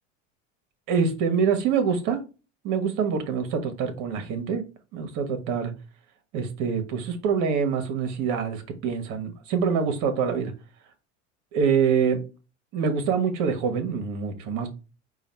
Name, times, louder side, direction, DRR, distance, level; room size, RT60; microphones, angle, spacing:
voice 1, 0.9-2.2 2.6-4.6 4.9-5.7 6.3-10.5 11.5-12.2 12.7-14.7, right 6 dB, 60° right, 1.4 m, -25 dB
4.8 x 2.5 x 4.4 m
hypercardioid pair, 95°, 35 cm